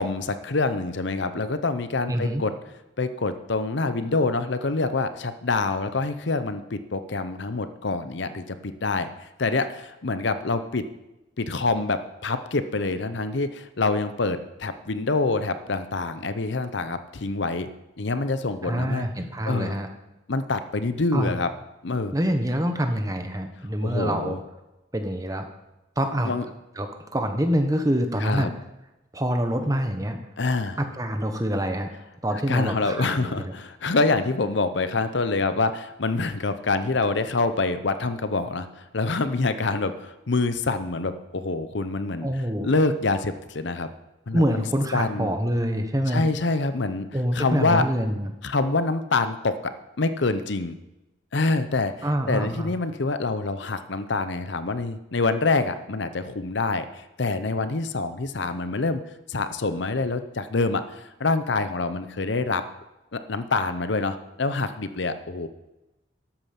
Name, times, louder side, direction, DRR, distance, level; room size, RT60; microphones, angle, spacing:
voice 1, 0.0-2.5 3.0-9.1 9.4-10.8 11.4-17.7 18.0-19.1 19.5-19.7 20.3-21.5 21.8-22.1 23.8-24.4 26.2-26.4 28.2-28.5 30.4-30.8 32.5-42.3 42.6-43.9 44.3-44.6 44.9-45.3 46.1-47.1 47.3-47.9 48.4-49.7 50.0-50.8 51.3-59.0 59.3-62.6 63.1-65.5, left 3 dB, 65° left, 11 dB, 0.7 m, -26 dB
voice 2, 2.1-2.4 18.6-19.9 21.1-21.3 22.1-24.4 24.9-25.4 26.0-26.3 26.8-28.5 29.1-30.2 30.8-31.9 32.2-33.5 42.2-42.7 44.3-46.2 47.1-48.3 52.0-52.7, equal, 15° right, 6 dB, 1.1 m, -26 dB
12.5 x 8.8 x 5.9 m, 0.98 s
head